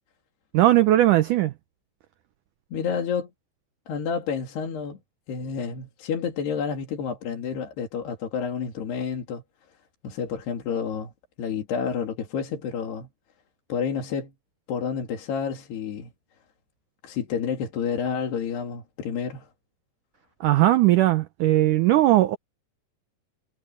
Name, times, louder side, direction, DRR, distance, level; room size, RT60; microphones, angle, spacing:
voice 1, 0.5-1.5 20.4-22.4, right 15 dB, 85° right, 1.8 m, -19 dB
voice 2, 2.7-3.3 3.9-5.0 5.3-9.4 10.0-11.1 11.4-13.1 13.7-14.3 14.7-16.1 17.0-19.5, left 6 dB, 75° left, 4.9 m, -29 dB
omnidirectional pair, 4.7 m